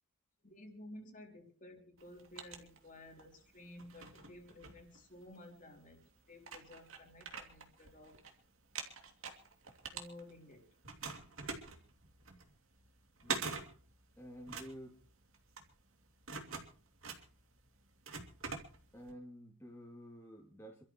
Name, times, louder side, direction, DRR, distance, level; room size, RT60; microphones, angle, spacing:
voice 1, 0.4-8.2 9.9-10.7, left 1 dB, 40° left, 2 dB, 3.4 m, -54 dB
sound 1, 2.0-3.3 3.8-5.4 6.0-6.1 6.4-8.3 8.6-10.5 10.8-19.1, right 5 dB, 65° right, 2.7 m, -45 dB
voice 2, 14.2-15.0 18.9-20.8, equal, 10° left, -2 dB, 2.8 m, -51 dB
28.0 x 13.0 x 3.2 m, 0.38 s
head